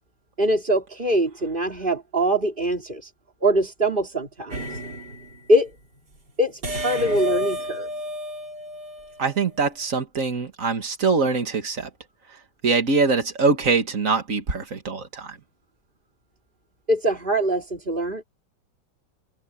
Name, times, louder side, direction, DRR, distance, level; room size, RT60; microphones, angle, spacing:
voice 1, 0.4-3.1 3.4-4.8 5.5-5.7 6.4-7.9 16.9-18.2, right 1 dB, 30° right, 3.5 m, -23 dB
sound 1, 4.5-5.4 6.6-9.4, equal, 65° right, 4.3 m, -31 dB
voice 2, 9.2-11.9 12.6-15.4, right 4 dB, 45° right, 2.3 m, -23 dB
open air
omnidirectional pair, 1.9 m